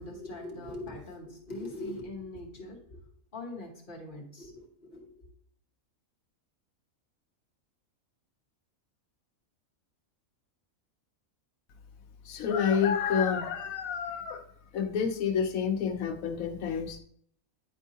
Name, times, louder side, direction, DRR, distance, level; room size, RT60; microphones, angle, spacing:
voice 1, 0.0-3.0 3.3-5.3, left 2 dB, 40° left, -1 dB, 1.3 m, -42 dB
voice 2, 12.2-14.5 14.7-17.0, left 7 dB, 75° left, 7 dB, 1.0 m, -29 dB
9.9 x 4.4 x 2.8 m, 0.65 s
omnidirectional pair, 1.5 m